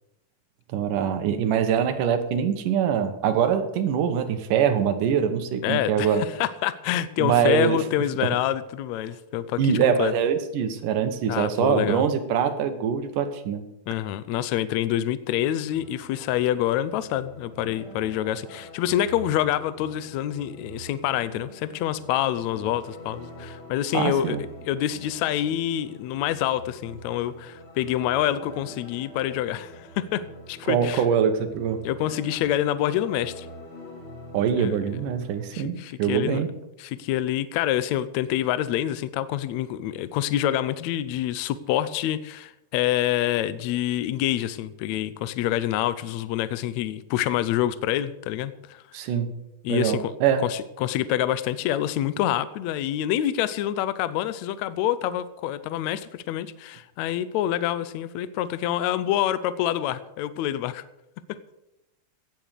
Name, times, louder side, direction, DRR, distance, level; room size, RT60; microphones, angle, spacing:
voice 1, 0.7-6.2 7.2-7.8 9.6-13.7 23.9-24.4 30.7-31.8 34.3-36.5 48.9-49.3 49.7-50.4, right 8 dB, 80° right, 9 dB, 2.8 m, -23 dB
voice 2, 5.6-10.1 11.3-12.0 13.9-24.4 24.6-31.0 31.8-33.5 34.6-35.0 35.5-36.4 36.8-48.8 49.6-50.1 50.4-60.8 61.3-61.4, left 12 dB, 75° left, 15 dB, 1.8 m, -27 dB
sound 1, 15.7-35.5, right 1 dB, 40° left, 4.4 m, -45 dB
16.5 x 7.5 x 6.6 m, 0.90 s
omnidirectional pair, 3.7 m